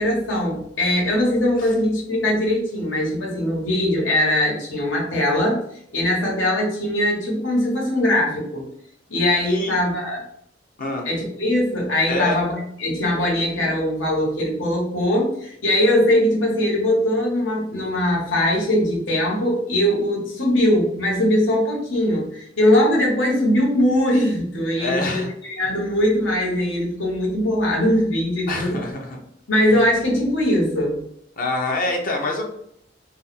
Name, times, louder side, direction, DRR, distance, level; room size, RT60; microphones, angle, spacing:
voice 1, 0.0-5.6 5.9-8.6 9.1-10.2 11.0-28.8 29.5-31.0, left 1 dB, 90° left, -2 dB, 1.2 m, -21 dB
voice 2, 12.1-12.4 24.8-25.3 28.5-29.2 31.4-32.5, left 2 dB, 50° left, 1 dB, 0.6 m, -26 dB
2.5 x 2.2 x 4.0 m, 0.71 s
head